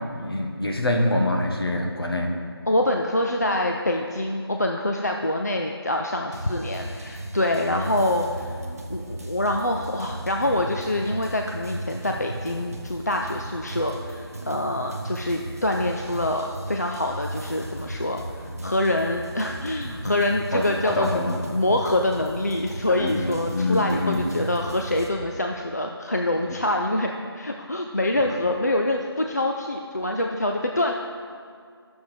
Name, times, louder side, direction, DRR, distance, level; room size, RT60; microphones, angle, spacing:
voice 1, 0.1-2.3 7.7-7.8 20.5-21.4 23.0-24.2, left 1 dB, 65° left, 1 dB, 1.3 m, -25 dB
voice 2, 2.7-8.6 8.9-30.9, left 1 dB, 40° left, 2 dB, 0.4 m, -25 dB
sound 1, 6.3-25.1, right 1 dB, 35° right, 0.8 m, -36 dB
11.0 x 6.9 x 3.4 m, 2.2 s
figure-of-eight pair, 170°, 14 cm